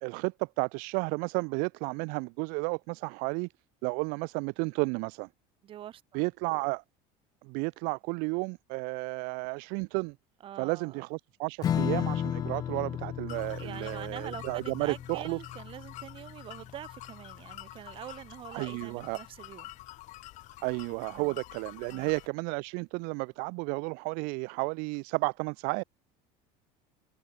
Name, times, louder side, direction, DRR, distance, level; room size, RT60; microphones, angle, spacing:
voice 1, 0.0-3.5 3.8-5.3 6.1-6.8 7.4-10.1 10.6-15.4 18.5-19.2 20.6-25.8, right 33 dB, 70° right, 0.8 m, -32 dB
voice 2, 5.6-6.2 10.4-11.0 13.6-19.7 21.1-21.4 21.9-22.1, right 11 dB, 35° right, 1.3 m, -45 dB
Strum, 11.6-18.5, left 10 dB, 25° left, 0.4 m, -35 dB
sound 1, 13.3-22.3, left 17 dB, 55° left, 4.0 m, -48 dB
cardioid pair, 160°, 15 cm